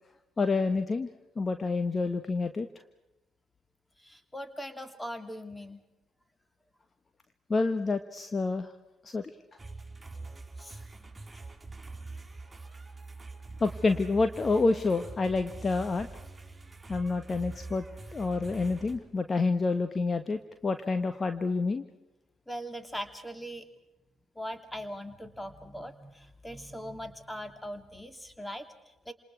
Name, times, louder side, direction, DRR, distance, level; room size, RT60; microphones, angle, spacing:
voice 1, 0.4-1.1 1.4-2.7 7.5-8.7 9.1-9.2 13.6-16.1 16.9-17.8 18.1-21.8, left 3 dB, 30° left, 8 dB, 1.4 m, -28 dB
voice 2, 4.0-5.8 10.6-11.4 22.5-23.7 24.3-29.1, equal, 10° left, 8 dB, 2.9 m, -41 dB
sound 1, 9.6-19.0, right 3 dB, 15° right, 4.7 m, -44 dB
28.5 x 27.5 x 4.8 m, 0.91 s
figure-of-eight pair, 40°, 0 cm